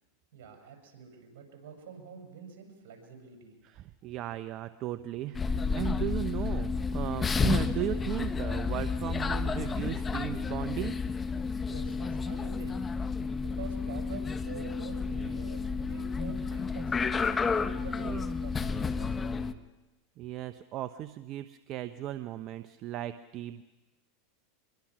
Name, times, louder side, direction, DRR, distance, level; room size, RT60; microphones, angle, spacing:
voice 1, 0.3-3.5 11.6-12.8 13.4-17.3 17.7-19.6, right 6 dB, 70° right, 3 dB, 6.9 m, -47 dB
voice 2, 3.6-10.9 18.0-18.2 20.2-23.6, right 14 dB, 45° right, 12 dB, 0.8 m, -36 dB
sound 1, 5.3-19.5, left 4 dB, 20° left, 1.2 m, -31 dB
25.0 x 22.5 x 6.2 m, 1.1 s
hypercardioid pair, 105°, 0 cm